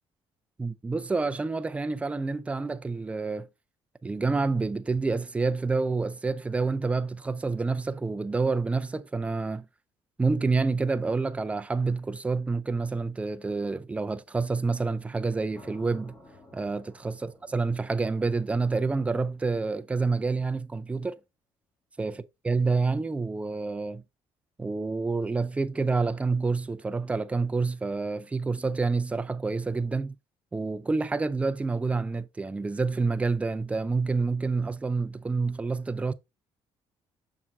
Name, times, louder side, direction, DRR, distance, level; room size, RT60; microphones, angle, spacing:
voice 1, 0.6-3.5 4.0-9.6 10.2-16.2 16.5-17.1 17.5-21.2 22.0-22.1 22.4-24.0 24.6-30.1 30.5-36.1, right 4 dB, 10° right, 0.4 m, -28 dB
sound 1, 15.5-19.6, left 1 dB, 15° left, 1.7 m, -54 dB
7.2 x 5.8 x 2.3 m
cardioid pair, 140°, 10 cm